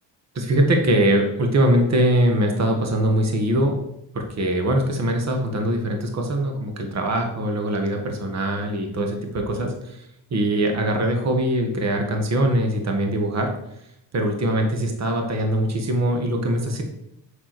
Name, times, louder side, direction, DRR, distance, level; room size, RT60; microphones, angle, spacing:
voice 1, 0.3-3.7 4.1-10.0 10.3-13.5 14.1-16.8, right 1 dB, 40° right, 3 dB, 1.6 m, -22 dB
7.9 x 6.1 x 6.1 m, 0.81 s
cardioid pair, 115°, 43 cm